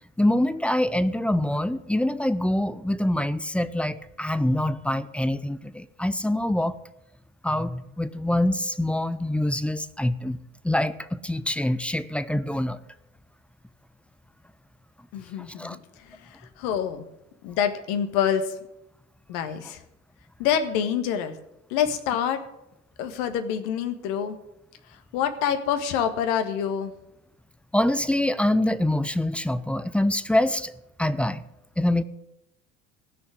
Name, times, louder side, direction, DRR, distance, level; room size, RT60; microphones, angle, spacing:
voice 1, 0.2-6.8 7.4-10.4 10.6-12.8 15.6-15.8 27.7-30.7 31.0-31.4 31.8-32.0, left 1 dB, 5° left, 15 dB, 0.6 m, -25 dB
voice 2, 15.1-15.8 16.6-17.0 17.4-18.4 19.3-19.8 20.4-21.3 21.7-22.4 23.0-24.4 25.1-26.9, left 8 dB, 55° left, 9 dB, 1.7 m, -26 dB
15.5 x 6.7 x 9.3 m, 0.85 s
figure-of-eight pair, 75°, 37 cm